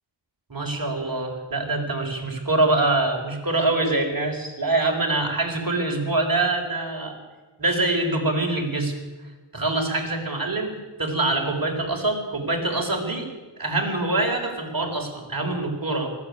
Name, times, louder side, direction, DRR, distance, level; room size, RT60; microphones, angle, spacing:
voice 1, 0.5-7.2 7.6-8.9 9.5-10.7 11.0-13.3 13.6-16.1, right 2 dB, 45° right, 2 dB, 4.6 m, -24 dB
19.0 x 15.0 x 9.7 m, 1.2 s
wide cardioid pair, 65°, 46 cm